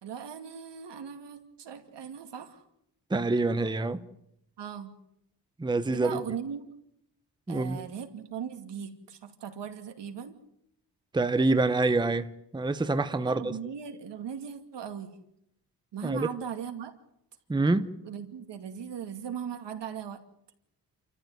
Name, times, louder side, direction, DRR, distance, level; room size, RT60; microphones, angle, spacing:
voice 1, 0.0-2.6 4.6-5.0 5.9-6.7 7.5-10.4 13.2-15.2 15.9-16.9 18.0-20.2, right 7 dB, 85° right, 2.6 m, -38 dB
voice 2, 3.1-4.0 5.6-6.2 7.5-7.8 11.1-12.3 12.5-13.5 16.0-16.3 17.5-17.9, right 3 dB, 10° right, 0.8 m, -26 dB
29.0 x 14.0 x 9.2 m
wide cardioid pair, 150°, 41 cm